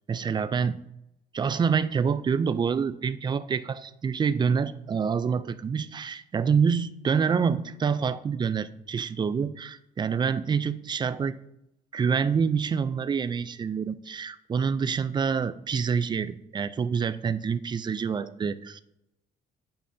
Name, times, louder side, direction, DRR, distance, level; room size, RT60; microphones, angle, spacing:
voice 1, 0.1-0.8 1.3-11.4 11.9-18.8, right 6 dB, 25° right, 13 dB, 0.4 m, -27 dB
8.8 x 5.4 x 2.7 m, 0.85 s
cardioid pair, 100°, 17 cm